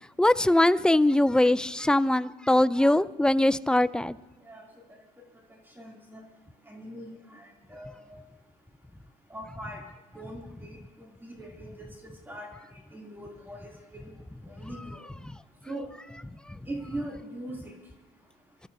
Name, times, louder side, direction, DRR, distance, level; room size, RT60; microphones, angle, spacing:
voice 1, 0.2-4.2, left 1 dB, 5° left, 0.4 m, -22 dB
voice 2, 5.8-6.2 6.7-8.2 9.3-9.8 10.1-12.5 12.9-14.1 14.5-15.0 15.7-15.9 16.7-17.7, right 1 dB, 10° right, 2.8 m, -41 dB
28.0 x 13.0 x 2.7 m
cardioid pair, 110°, 17 cm